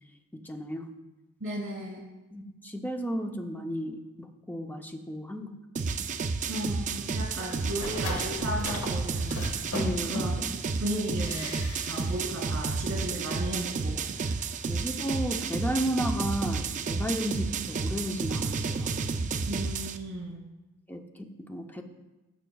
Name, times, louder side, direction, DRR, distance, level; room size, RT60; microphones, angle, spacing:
voice 1, 0.4-0.9 2.3-5.6 9.7-10.2 14.7-18.9 20.9-21.8, equal, 10° left, 4 dB, 0.6 m, -33 dB
voice 2, 1.4-2.0 6.5-9.5 10.1-10.3 10.8-11.5 11.9-14.3 19.5-20.4, right 1 dB, 65° right, -1 dB, 2.4 m, -35 dB
sound 1, 5.8-20.0, right 4 dB, 35° right, 0.4 m, -31 dB
sound 2, 7.5-10.6 11.2-12.3 12.5-12.6, left 1 dB, 70° left, 1.6 m, -37 dB
14.5 x 6.1 x 2.3 m, 1.1 s
head